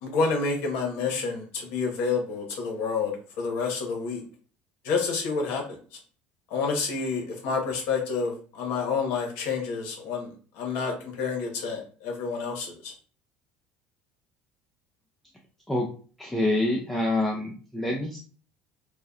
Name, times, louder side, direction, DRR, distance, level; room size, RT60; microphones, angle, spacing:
voice 1, 0.0-4.2 4.8-5.8 6.5-12.9, left 4 dB, 75° left, 1 dB, 0.8 m, -29 dB
voice 2, 16.2-18.2, left 1 dB, 5° left, -1 dB, 0.4 m, -26 dB
2.7 x 2.1 x 2.3 m, 0.40 s
cardioid pair, 145°, 4 cm